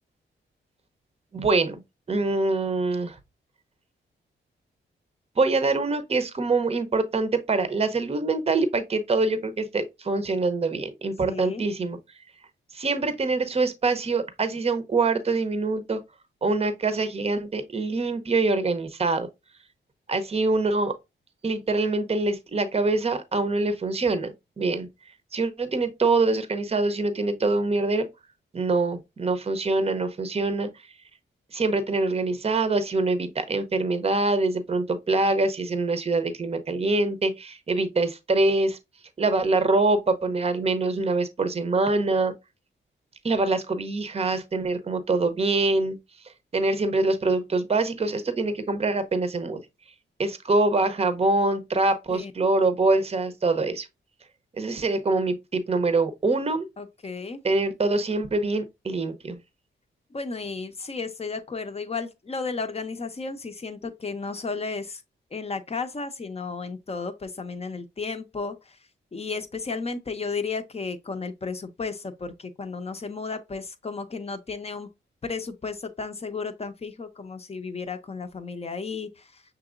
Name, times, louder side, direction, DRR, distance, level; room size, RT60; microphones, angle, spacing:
voice 1, 1.3-1.8 2.1-3.2 5.4-12.0 12.7-16.0 16.4-19.3 20.1-20.9 21.4-24.9 25.3-28.1 28.5-30.7 31.5-38.8 39.2-42.3 43.2-46.0 46.5-49.6 50.2-53.9 54.6-56.7 57.4-59.4, right 3 dB, 30° right, 0.7 m, -24 dB
voice 2, 11.2-11.6 52.1-52.3 56.8-57.4 60.1-65.0 65.3-68.8 69.1-74.9 75.2-79.4, left 4 dB, 30° left, 0.6 m, -33 dB
6.0 x 2.9 x 2.4 m
cardioid pair, 75°, 20 cm